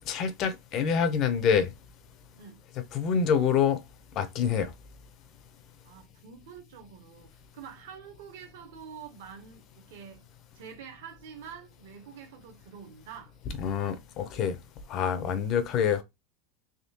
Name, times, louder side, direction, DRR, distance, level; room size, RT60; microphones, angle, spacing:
voice 1, 0.1-1.7 2.8-3.8 4.2-4.7 13.6-14.6 14.9-16.0, left 7 dB, 30° left, 0.5 m, -26 dB
voice 2, 5.8-10.2 10.5-13.3, right 7 dB, 60° right, 0.8 m, -47 dB
3.5 x 3.2 x 2.7 m
supercardioid pair, 180°, 0 cm